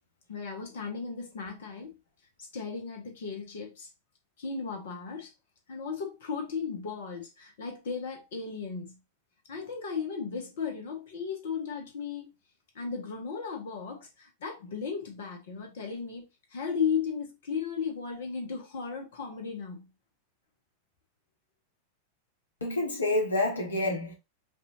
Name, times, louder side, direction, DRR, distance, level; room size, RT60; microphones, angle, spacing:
voice 1, 0.3-1.9 2.4-3.9 4.4-5.3 5.7-9.0 9.5-12.3 12.7-19.9, left 6 dB, 60° left, 1.5 m, -35 dB
voice 2, 22.6-24.1, left 2 dB, 75° left, 1.4 m, -28 dB
5.2 x 2.8 x 2.7 m
figure-of-eight pair, 90°, 0 cm